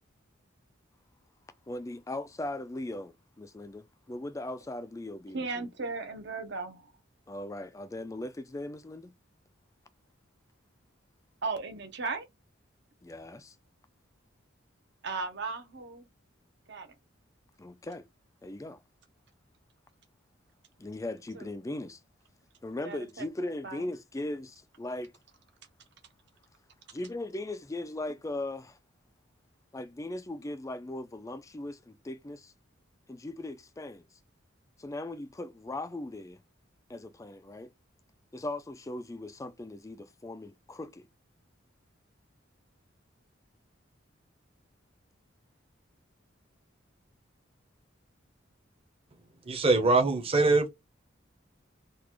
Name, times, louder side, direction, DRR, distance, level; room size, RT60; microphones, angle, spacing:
voice 1, 1.7-5.7 7.3-9.1 13.0-13.6 17.6-18.1 18.4-18.8 20.8-22.0 22.6-25.1 26.9-28.8 29.7-32.5 33.1-34.1 34.8-36.4 36.9-37.7 38.3-41.1, left 2 dB, 15° left, 0.4 m, -39 dB
voice 2, 5.3-6.8 11.4-12.2 15.0-16.0 16.7-16.9 21.3-21.5 22.9-23.3 23.6-23.8, right 4 dB, 60° right, 0.9 m, -36 dB
voice 3, 49.4-50.7, right 3 dB, 30° right, 0.8 m, -23 dB
3.9 x 2.5 x 3.0 m
head